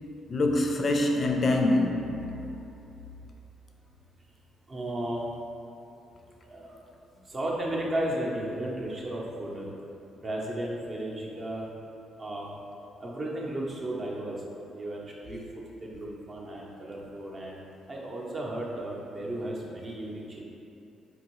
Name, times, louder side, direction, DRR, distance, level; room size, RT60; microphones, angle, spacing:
voice 1, 0.3-2.4, left 2 dB, 40° left, 2 dB, 0.4 m, -25 dB
voice 2, 4.7-5.3 6.5-6.8 7.3-9.7 10.1-11.7 12.2-12.5 13.0-14.4 14.7-17.6 17.9-20.4, right 1 dB, 35° right, -3 dB, 0.6 m, -34 dB
3.6 x 2.7 x 3.0 m, 2.8 s
cardioid pair, 90°, 0 cm